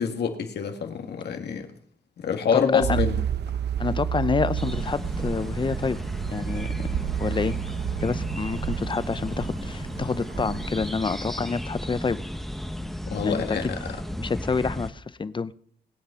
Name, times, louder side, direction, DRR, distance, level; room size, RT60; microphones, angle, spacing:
voice 1, 0.0-1.7 2.2-3.2 13.1-13.7, left 7 dB, 75° left, 5 dB, 1.8 m, -26 dB
voice 2, 2.5-3.0 3.8-6.0 6.3-6.7 7.2-7.6 8.0-12.2 13.2-13.7 14.2-15.5, left 4 dB, 30° left, 16 dB, 0.6 m, -28 dB
sound 1, 2.8-10.9, right 9 dB, 85° right, 0.8 m, -31 dB
sound 2, 4.6-14.9, equal, ahead, 1.2 m, -34 dB
19.5 x 8.7 x 5.7 m, 0.65 s
cardioid pair, 90°, 17 cm